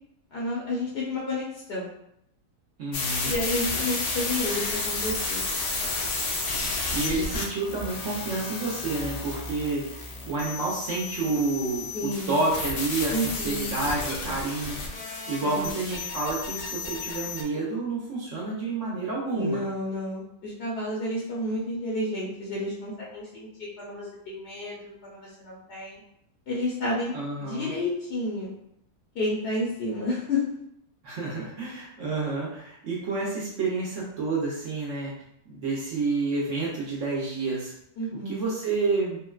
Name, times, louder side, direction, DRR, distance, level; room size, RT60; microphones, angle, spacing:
voice 1, 0.3-1.9 3.2-5.4 11.9-12.5 13.1-13.7 15.4-15.8 19.3-26.0 26.5-27.1 27.4-28.5 29.1-30.4 38.0-38.5, left 1 dB, 55° left, -5 dB, 0.7 m, -31 dB
voice 2, 2.8-3.4 6.9-15.0 15.3-19.6 27.1-27.7 31.0-35.1 35.5-37.7 38.3-39.2, right 3 dB, 60° right, -5 dB, 0.9 m, -29 dB
sound 1, 2.9-17.4, left 3 dB, 85° left, 1.2 m, -32 dB
3.6 x 2.1 x 2.3 m, 0.75 s
omnidirectional pair, 1.7 m